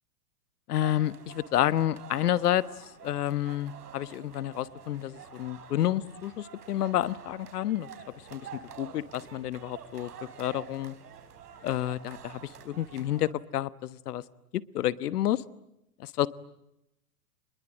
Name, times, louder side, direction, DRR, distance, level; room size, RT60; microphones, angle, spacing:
voice 1, 0.7-2.6 3.0-7.9 8.3-10.1 10.4-10.9 11.6-14.2 14.5-15.4 16.0-16.3, left 12 dB, 75° left, 17 dB, 1.3 m, -29 dB
sound 1, 0.7-13.3, right 7 dB, 85° right, 4.0 m, -48 dB
28.5 x 21.5 x 8.9 m, 0.85 s
hypercardioid pair, 130°, 46 cm